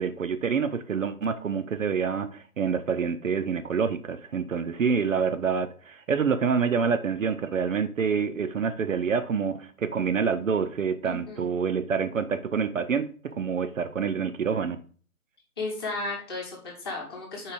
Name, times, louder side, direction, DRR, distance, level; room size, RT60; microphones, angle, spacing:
voice 1, 0.0-14.8, right 6 dB, 60° right, 0.6 m, -27 dB
voice 2, 11.0-11.5 15.6-17.5, left 2 dB, 15° left, 1.0 m, -34 dB
4.6 x 4.2 x 4.9 m
figure-of-eight pair, 150°, 45 cm